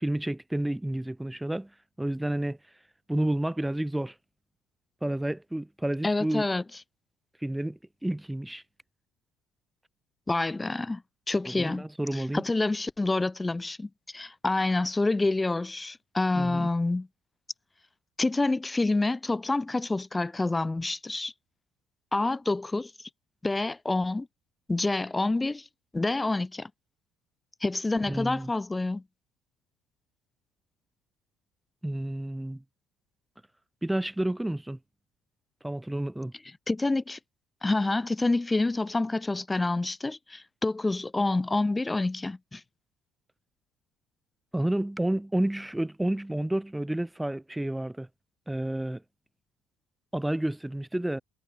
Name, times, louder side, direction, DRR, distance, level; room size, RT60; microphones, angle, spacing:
voice 1, 0.0-1.7 2.0-2.6 3.1-4.1 5.0-6.4 7.4-8.6 11.5-12.4 16.4-16.7 28.1-28.5 31.8-32.6 33.8-34.8 35.6-36.3 44.5-48.1 48.5-49.0 50.1-51.2, right 1 dB, 5° right, 1.9 m, -30 dB
voice 2, 6.0-6.6 10.3-11.0 11.3-11.9 12.1-17.1 18.2-21.3 22.1-22.9 23.4-24.3 24.7-25.7 25.9-26.7 27.6-29.0 36.7-37.2 37.6-42.6, left 2 dB, 15° left, 3.8 m, -27 dB
hypercardioid pair, 55°, 0 cm